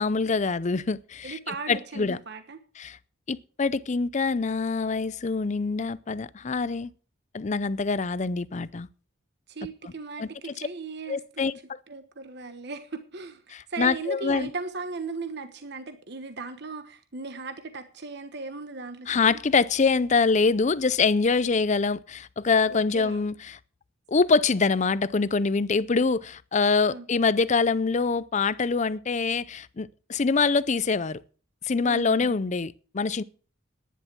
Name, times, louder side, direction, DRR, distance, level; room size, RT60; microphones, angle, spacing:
voice 1, 0.0-2.2 2.8-3.0 3.3-6.9 7.3-8.9 10.2-10.3 10.6-10.7 11.1-11.5 13.5-14.5 19.1-23.6 24.1-31.2 31.6-33.2, left 4 dB, 35° left, 0.5 m, -25 dB
voice 2, 1.2-2.6 9.5-11.5 11.9-19.2 22.7-23.2 26.9-27.1 31.8-32.3, right 4 dB, 55° right, 1.2 m, -37 dB
11.0 x 10.5 x 6.1 m
head